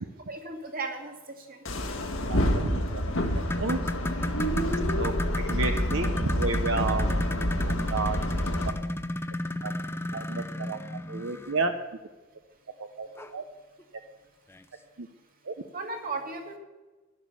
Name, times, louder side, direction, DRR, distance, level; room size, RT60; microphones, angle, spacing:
voice 1, 0.3-1.6 15.7-16.6, right 3 dB, 45° right, 3 dB, 2.2 m, -36 dB
sound 1, 1.7-8.7, equal, 85° left, 1.8 m, -28 dB
voice 2, 2.3-3.8 4.4-4.5 4.9-5.1 5.5-7.1 7.7-8.2 9.6-9.7 10.1-10.8 11.1-11.7 12.8-13.4 15.0-15.1 15.4-15.6, right 3 dB, 65° right, 7 dB, 0.8 m, -31 dB
sound 2, 3.3-11.8 13.2-13.3 13.8-13.9 14.5-14.6, left 1 dB, 10° left, 0.6 m, -34 dB
12.0 x 11.5 x 6.8 m, 1.2 s
head